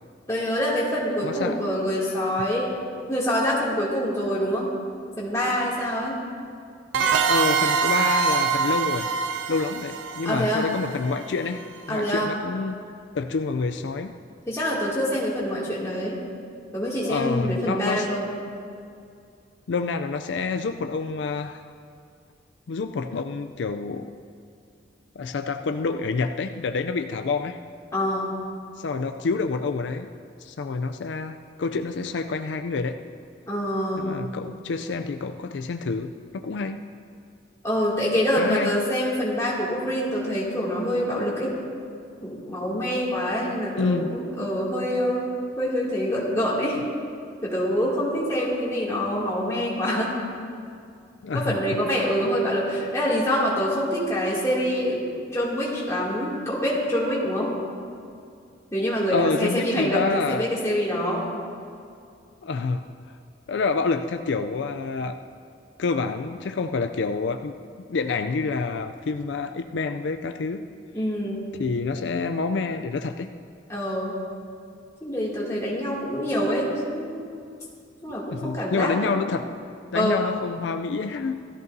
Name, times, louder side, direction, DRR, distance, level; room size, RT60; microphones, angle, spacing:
voice 1, 0.3-2.7 3.1-4.7 5.2-6.2 10.2-10.7 11.9-12.3 14.5-16.2 16.7-18.2 27.9-28.3 33.5-34.1 37.6-41.5 42.2-46.8 47.4-50.1 51.3-55.0 55.3-57.5 58.7-61.3 70.9-71.5 73.7-74.2 75.0-77.2 78.0-79.1 79.9-80.2, equal, 15° left, -7 dB, 2.5 m, -25 dB
voice 2, 1.2-1.6 7.3-9.1 9.5-11.6 11.9-12.8 13.1-14.2 17.1-18.1 19.7-21.6 22.7-24.1 25.2-27.6 28.8-30.1 30.4-33.0 34.0-36.9 38.4-38.8 43.8-44.1 51.2-51.6 59.1-60.5 62.4-62.8 63.5-65.2 65.8-67.5 67.9-70.7 71.6-73.3 78.3-79.5 79.9-81.4, left 4 dB, 70° left, 7 dB, 0.4 m, -27 dB
sound 1, 6.9-11.4, right 6 dB, 85° right, 0.5 m, -24 dB
16.5 x 13.5 x 2.7 m, 2.3 s
head